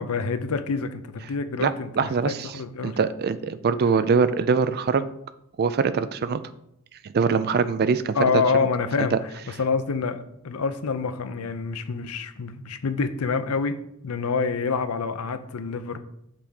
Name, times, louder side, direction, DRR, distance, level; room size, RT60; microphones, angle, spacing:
voice 1, 0.0-3.0 8.2-13.7 14.0-16.0, left 5 dB, 75° left, 10 dB, 0.6 m, -27 dB
voice 2, 2.0-2.6 2.8-5.0 5.6-6.4 7.0-8.2, right 5 dB, 45° right, 13 dB, 0.4 m, -23 dB
6.3 x 5.8 x 3.5 m, 0.77 s
head